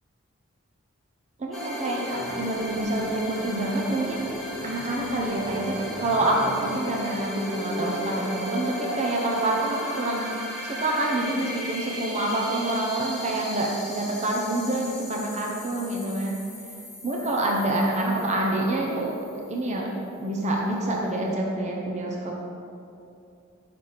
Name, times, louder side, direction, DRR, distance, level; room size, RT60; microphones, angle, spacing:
voice 1, 1.4-4.3 4.6-10.3 10.6-16.4 17.0-19.9 20.2-22.4, right 1 dB, 35° right, -1 dB, 0.6 m, -27 dB
sound 1, 1.5-20.0, equal, ahead, 1.1 m, -36 dB
5.9 x 3.3 x 5.5 m, 2.6 s
head